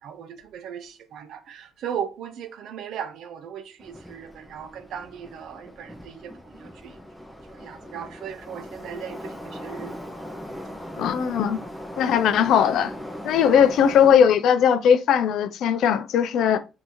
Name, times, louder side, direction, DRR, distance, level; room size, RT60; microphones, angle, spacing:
voice 1, 0.0-7.0 7.5-10.0 13.5-13.7, right 8 dB, 80° right, 0.6 m, -37 dB
Subway metro underground, 3.8-14.1, equal, 5° left, 0.9 m, -39 dB
voice 2, 11.0-11.6 12.0-12.9 13.2-16.6, left 8 dB, 80° left, 0.4 m, -19 dB
5.5 x 2.7 x 2.9 m
cardioid pair, 90°, 0 cm